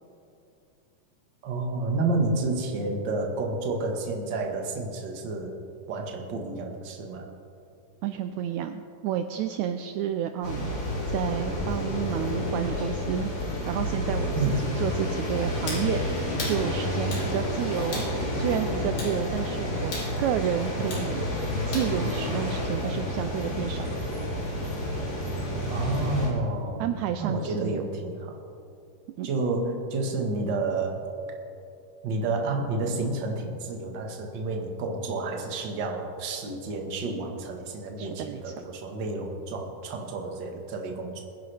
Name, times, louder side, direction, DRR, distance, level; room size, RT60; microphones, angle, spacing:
voice 1, 1.4-5.6 5.9-7.3 14.3-14.7 25.7-26.9 27.2-28.4 29.2-31.0 32.0-41.2, right 2 dB, 45° right, 2 dB, 1.6 m, -30 dB
voice 2, 8.0-10.8 11.1-13.3 13.7-14.3 14.6-16.0 16.4-18.0 18.3-19.9 20.2-21.3 21.7-23.9 26.8-27.9 29.2-29.3 38.0-38.5, right 10 dB, 80° right, 7 dB, 1.8 m, -30 dB
sound 1, 10.4-26.3, left 1 dB, 60° left, 5.1 m, -30 dB
sound 2, 15.7-15.9 16.4-16.6 17.1-17.3 17.9-18.1 19.0-19.2 19.9-20.1 20.9-21.1 21.7-21.9, left 2 dB, 85° left, 4.7 m, -35 dB
21.5 x 10.5 x 3.4 m, 2.6 s
omnidirectional pair, 3.6 m